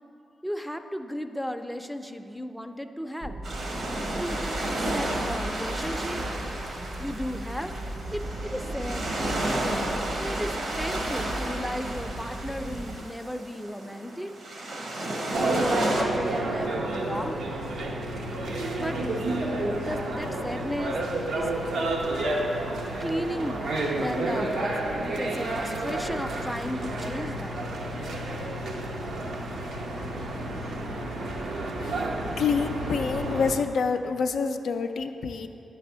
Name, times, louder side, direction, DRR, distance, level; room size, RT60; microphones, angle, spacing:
voice 1, 0.4-3.4 4.2-6.2 7.0-7.8 8.1-9.1 10.2-14.3 15.4-17.4 18.8-19.0 19.8-20.9 21.4-21.5 23.0-23.6 23.9-27.7, equal, ahead, 6 dB, 0.4 m, -34 dB
sound 1, 3.2-13.0, right 1 dB, 50° right, 0.6 m, -37 dB
sound 2, 3.4-16.0, right 1 dB, 65° right, 1.1 m, -32 dB
sound 3, 15.3-33.5, right 1 dB, 80° right, 0.8 m, -30 dB
voice 2, 32.4-35.5, left 5 dB, 75° left, 6 dB, 0.3 m, -27 dB
9.1 x 3.4 x 5.5 m, 2.7 s
supercardioid pair, 55°, 0 cm